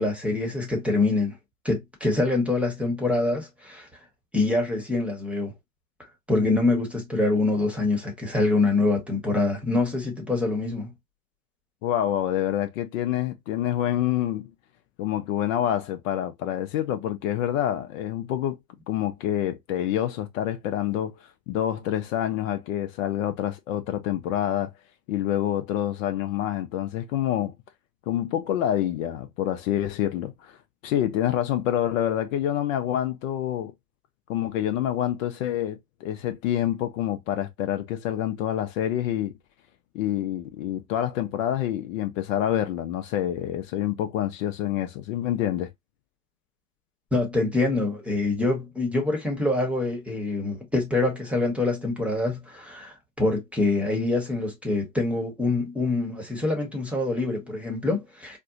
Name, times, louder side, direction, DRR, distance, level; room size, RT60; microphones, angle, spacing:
voice 1, 0.0-1.3 1.6-3.9 4.3-5.5 6.3-10.9 47.1-58.4, left 2 dB, 5° right, 1.0 m, -25 dB
voice 2, 11.8-14.5 15.0-18.6 18.9-21.1 21.5-24.7 25.1-27.5 28.1-30.6 30.8-33.7 34.3-39.3 39.9-45.7, left 11 dB, 55° left, 0.7 m, -27 dB
4.4 x 2.2 x 2.5 m
hypercardioid pair, 100°, 49 cm